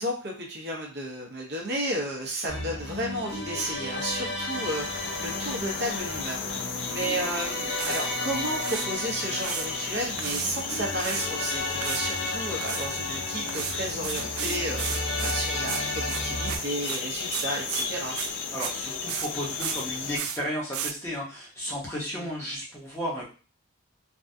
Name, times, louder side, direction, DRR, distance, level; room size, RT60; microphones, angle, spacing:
voice 1, 0.0-14.9 15.2-18.2 22.1-22.3, right 1 dB, 45° right, -1 dB, 0.8 m, -33 dB
sound 1, 2.5-16.6, left 2 dB, 90° left, 1.2 m, -34 dB
sound 2, 4.5-20.2, left 5 dB, 55° left, 0.4 m, -34 dB
sound 3, 7.3-7.4 7.8-8.1 8.5-8.9 9.3-9.7 10.2-11.3 11.8-12.1 12.4-12.9 13.5-18.8 19.1-19.3 19.6-19.8 20.1-20.4 20.7-20.9, right 9 dB, 65° right, 0.3 m, -34 dB
voice 2, 18.5-23.3, equal, 10° left, -5 dB, 0.9 m, -34 dB
3.4 x 2.3 x 2.7 m, 0.35 s
head